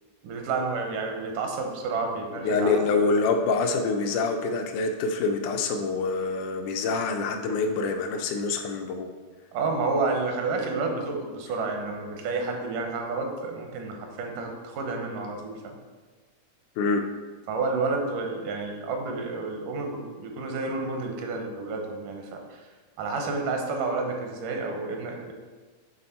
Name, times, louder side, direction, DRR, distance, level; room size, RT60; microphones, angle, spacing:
voice 1, 0.2-3.2 9.5-15.8 17.5-22.7 23.0-25.3, right 3 dB, 85° right, 2 dB, 2.4 m, -30 dB
voice 2, 2.4-9.1 16.8-17.1, left 4 dB, 80° left, 5 dB, 1.9 m, -26 dB
8.9 x 3.6 x 4.2 m, 1.4 s
omnidirectional pair, 3.7 m